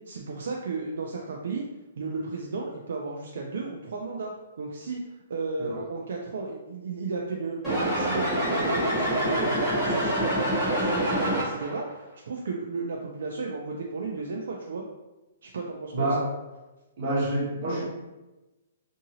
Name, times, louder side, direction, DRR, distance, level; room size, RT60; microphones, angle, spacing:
voice 1, 0.1-1.6 2.0-4.3 4.6-5.0 5.3-14.8 15.4-16.3, right 4 dB, 60° right, 0 dB, 0.3 m, -34 dB
sound 1, 7.6-11.8, equal, 10° left, 0.7 m, -26 dB
voice 2, 15.9-16.3 17.0-17.8, right 1 dB, 35° right, -6 dB, 1.0 m, -27 dB
2.7 x 2.6 x 2.7 m, 1.1 s
hypercardioid pair, 180°, 0 cm